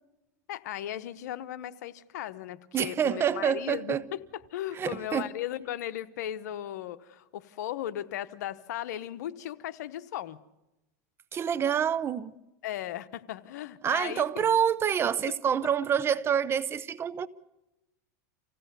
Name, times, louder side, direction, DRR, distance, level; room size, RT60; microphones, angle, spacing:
voice 1, 0.5-10.4 12.6-14.5, left 12 dB, 80° left, 0.9 m, -37 dB
voice 2, 2.7-4.0 4.7-5.3 11.3-12.3 13.8-17.3, right 8 dB, 25° right, 0.8 m, -27 dB
26.0 x 16.0 x 6.8 m
supercardioid pair, 120°, 9 cm